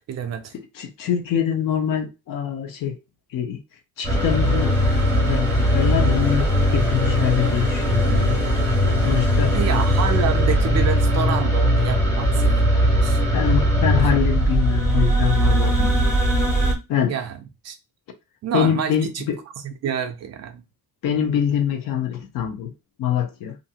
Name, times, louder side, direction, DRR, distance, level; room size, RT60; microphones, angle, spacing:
voice 1, 0.1-0.5 9.5-12.7 13.0-13.2 14.0-14.1 17.1-17.4 17.6-17.8 18.4-19.3 19.6-20.6, right 8 dB, 45° right, 0.4 m, -27 dB
voice 2, 0.7-3.0 3.3-3.6 4.0-4.7 5.2-8.4 9.0-9.6 10.1-10.2 13.0-13.1 13.3-16.1 16.9-17.1 18.5-19.4 21.0-22.7 23.0-23.5, left 9 dB, 60° left, 0.7 m, -24 dB
sound 1, 4.0-16.7, equal, 5° left, 0.6 m, -19 dB
2.6 x 2.4 x 2.7 m
cardioid pair, 150°, 38 cm